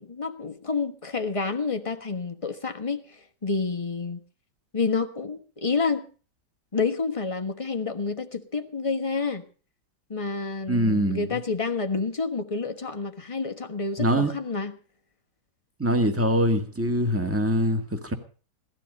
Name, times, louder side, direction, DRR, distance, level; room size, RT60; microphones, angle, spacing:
voice 1, 0.0-4.2 4.7-6.0 6.7-9.4 10.1-14.8, left 4 dB, 20° left, 1.2 m, -29 dB
voice 2, 10.7-11.2 14.0-14.3 15.8-18.1, equal, 10° right, 1.9 m, -23 dB
18.0 x 13.0 x 5.3 m
omnidirectional pair, 1.9 m